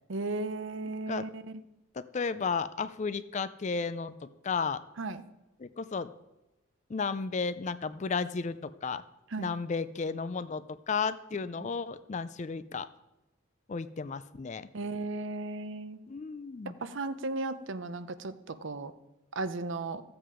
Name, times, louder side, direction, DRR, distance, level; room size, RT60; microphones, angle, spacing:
voice 1, 0.1-1.6 5.0-5.2 9.3-9.5 14.7-16.0 16.8-18.9 19.3-20.0, right 2 dB, 60° right, 13 dB, 0.6 m, -35 dB
voice 2, 2.0-4.8 5.6-6.1 6.9-9.0 9.4-12.9 13.7-14.7 16.1-16.7, left 5 dB, 35° left, 14 dB, 0.4 m, -33 dB
14.5 x 7.9 x 4.9 m, 0.97 s
head